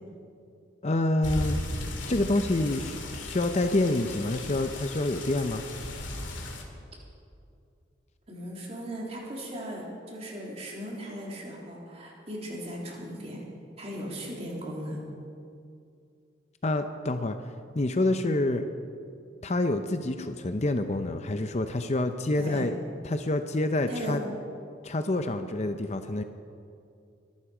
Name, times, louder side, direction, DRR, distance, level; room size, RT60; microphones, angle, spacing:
voice 1, 0.8-1.6 2.1-5.6 16.6-17.5 17.7-18.7 19.4-22.8 23.0-24.2 24.8-26.2, left 2 dB, 35° left, 8 dB, 0.6 m, -27 dB
sound 1, 1.2-6.6, left 1 dB, 75° left, 2.3 m, -36 dB
voice 2, 8.3-13.4 13.8-15.0 22.4-22.6 23.9-24.2, equal, 35° right, -3 dB, 3.3 m, -37 dB
23.5 x 11.5 x 5.0 m, 2.5 s
head